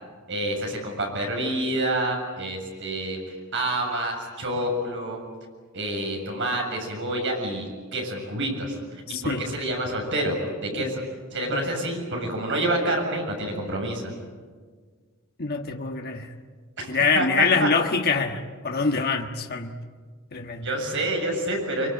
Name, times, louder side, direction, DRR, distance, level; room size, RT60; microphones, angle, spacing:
voice 1, 0.3-5.2 5.7-10.4 10.6-11.0 11.3-14.1 16.8-16.9 17.1-17.7 20.6-21.9, right 1 dB, 60° right, 7.5 m, -28 dB
voice 2, 9.1-9.4 10.7-10.9 11.5-11.6 15.4-16.3 16.9-19.8 20.3-20.7, left 4 dB, 45° left, 1.5 m, -25 dB
25.0 x 24.0 x 9.1 m
head